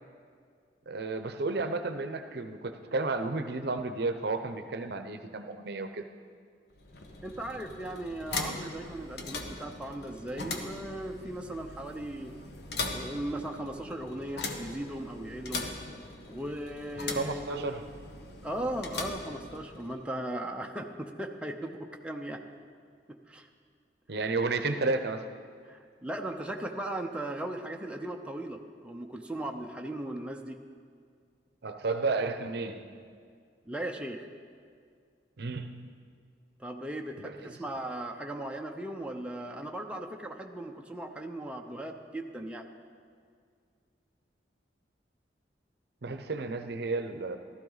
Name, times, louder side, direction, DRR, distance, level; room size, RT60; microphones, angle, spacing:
voice 1, 0.9-6.0 17.1-17.8 24.1-25.2 31.6-32.9 35.4-36.0 37.2-37.6 46.0-47.4, right 3 dB, 65° right, 8 dB, 0.7 m, -32 dB
sound 1, 6.7-20.0, left 3 dB, 65° left, 1.1 m, -40 dB
voice 2, 7.2-12.3 12.8-15.7 16.2-17.8 18.4-22.4 23.1-23.5 25.7-30.6 33.6-34.3 36.6-42.7, right 1 dB, 5° right, 2 dB, 0.6 m, -37 dB
15.5 x 13.0 x 4.0 m, 2.1 s
head